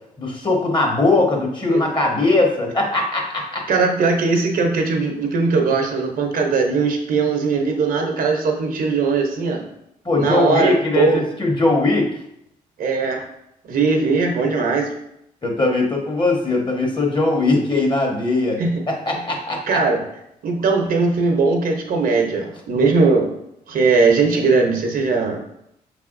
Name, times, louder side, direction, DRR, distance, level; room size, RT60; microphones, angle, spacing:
voice 1, 0.2-3.6 10.0-12.1 15.4-18.6 18.9-19.8, left 2 dB, 30° left, 0 dB, 1.3 m, -20 dB
voice 2, 3.7-9.7 10.2-11.3 12.8-13.2 13.6-14.9 18.6-18.8 19.7-20.0 20.4-23.3 23.7-25.4, right 4 dB, 70° right, 2 dB, 0.9 m, -19 dB
5.4 x 3.4 x 2.6 m, 0.77 s
supercardioid pair, 65°, 16 cm